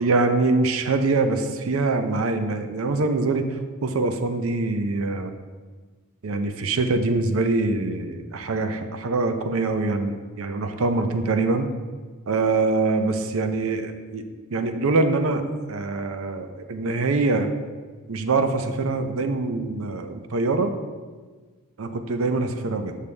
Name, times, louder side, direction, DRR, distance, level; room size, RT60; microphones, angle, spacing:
voice 1, 0.0-5.3 6.2-11.7 12.3-14.2 14.5-15.4 15.7-17.5 18.1-20.7 21.8-23.0, right 3 dB, 70° right, 7 dB, 0.6 m, -24 dB
7.0 x 6.6 x 3.3 m, 1.4 s
head